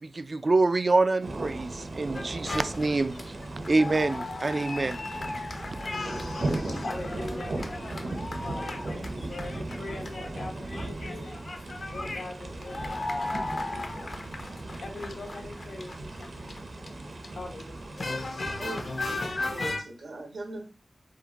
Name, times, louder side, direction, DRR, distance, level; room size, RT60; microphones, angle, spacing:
voice 1, 0.0-3.2 3.7-5.1, right 3 dB, 45° right, 0.3 m, -26 dB
sound 1, 1.2-19.8, right 2 dB, 65° right, 0.8 m, -37 dB
sound 2, 2.1-10.5 10.7-17.3 17.6-19.8, left 2 dB, 55° left, 0.6 m, -36 dB
voice 2, 5.9-18.9, left 2 dB, 90° left, 1.4 m, -43 dB
voice 3, 18.6-19.2 19.5-20.7, right 2 dB, 90° right, 1.3 m, -39 dB
5.0 x 2.5 x 4.0 m
wide cardioid pair, 85°, 0 cm